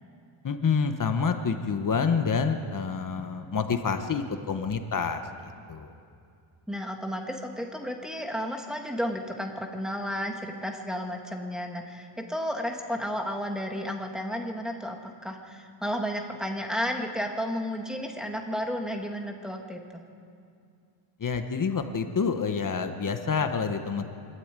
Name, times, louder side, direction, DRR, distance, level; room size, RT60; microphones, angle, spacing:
voice 1, 0.4-5.2 5.7-5.9 21.2-24.0, left 5 dB, 40° left, 7 dB, 1.2 m, -27 dB
voice 2, 6.7-20.0, equal, ahead, 3 dB, 1.8 m, -32 dB
24.5 x 12.5 x 9.1 m, 2.4 s
wide cardioid pair, 135°, 50 cm